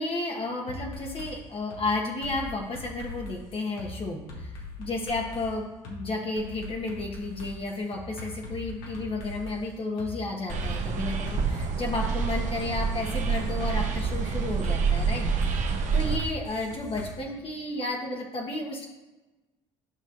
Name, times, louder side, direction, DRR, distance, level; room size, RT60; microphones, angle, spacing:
voice 1, 0.0-15.6 15.9-18.9, left 2 dB, 40° left, 0 dB, 1.5 m, -32 dB
sound 1, 0.7-1.3 1.7-1.8 2.2-3.9 4.3-5.5 5.8-6.0 6.4-9.6 10.0-10.1 10.5-12.2 12.6-13.7 14.1-14.3 14.6-17.1, left 2 dB, 70° left, 2.0 m, -41 dB
sound 2, 10.5-16.2, right 5 dB, 55° right, 1.1 m, -27 dB
10.5 x 6.1 x 2.7 m, 1.1 s
hypercardioid pair, 55°, 15 cm